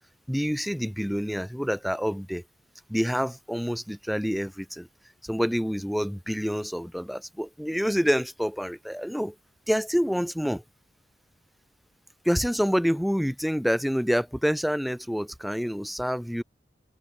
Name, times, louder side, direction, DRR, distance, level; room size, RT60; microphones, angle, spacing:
voice 1, 0.3-2.4 2.9-4.9 5.2-9.3 9.7-10.6 12.2-16.4, equal, ahead, 1.3 m, -27 dB
open air
head